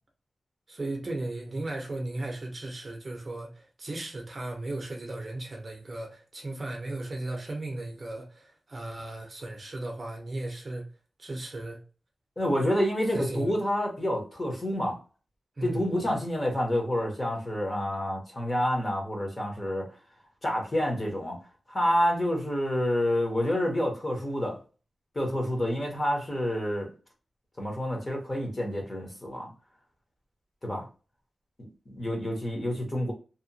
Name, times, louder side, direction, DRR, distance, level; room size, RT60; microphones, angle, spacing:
voice 1, 0.7-10.9 11.2-11.8 13.1-13.5 15.6-15.9, right 2 dB, 35° right, 0.6 m, -36 dB
voice 2, 12.4-15.0 15.6-19.9 20.4-21.4 21.7-24.6 25.1-26.9 27.6-29.5 30.6-30.8 31.6-33.1, equal, 25° left, 0.8 m, -28 dB
2.7 x 2.2 x 2.6 m
wide cardioid pair, 150°, 0 cm